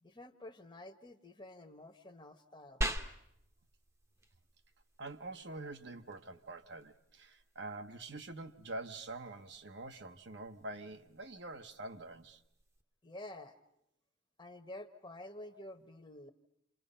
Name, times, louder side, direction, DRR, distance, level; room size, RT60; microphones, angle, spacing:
voice 1, 0.0-2.8 13.0-13.6 14.4-16.3, left 1 dB, 20° left, 1.1 m, -50 dB
sound 1, 2.8-12.8, equal, 15° right, 0.9 m, -46 dB
voice 2, 5.0-12.4, right 2 dB, 55° right, 1.0 m, -46 dB
28.5 x 28.0 x 5.6 m
head